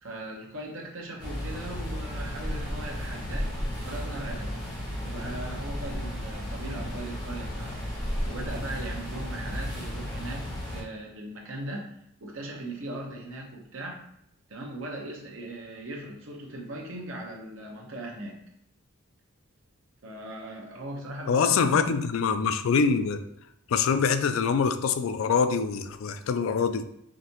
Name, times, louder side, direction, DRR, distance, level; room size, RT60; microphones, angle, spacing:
voice 1, 0.0-3.5 3.8-4.6 5.0-7.8 8.3-12.0 12.2-14.0 14.5-18.4 20.0-21.8, right 1 dB, 75° right, -1 dB, 1.0 m, -39 dB
Computer data center, 1.2-10.8, equal, 20° left, 1.0 m, -34 dB
voice 2, 21.3-23.2 23.7-26.8, left 5 dB, 75° left, 10 dB, 0.4 m, -24 dB
5.0 x 2.7 x 2.9 m, 0.77 s
head